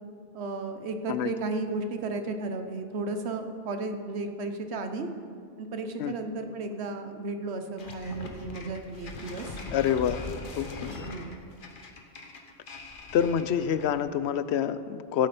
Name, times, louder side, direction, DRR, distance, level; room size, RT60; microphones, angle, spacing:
voice 1, 0.3-5.1 5.6-9.6 10.9-11.4, right 3 dB, 85° right, 7 dB, 1.2 m, -34 dB
sound 1, 7.8-14.0, left 3 dB, 55° left, 1.1 m, -41 dB
voice 2, 9.7-10.2 10.6-11.1 13.1-15.3, left 9 dB, 80° left, 13 dB, 0.8 m, -27 dB
15.5 x 8.6 x 4.2 m, 2.2 s
omnidirectional pair, 1.1 m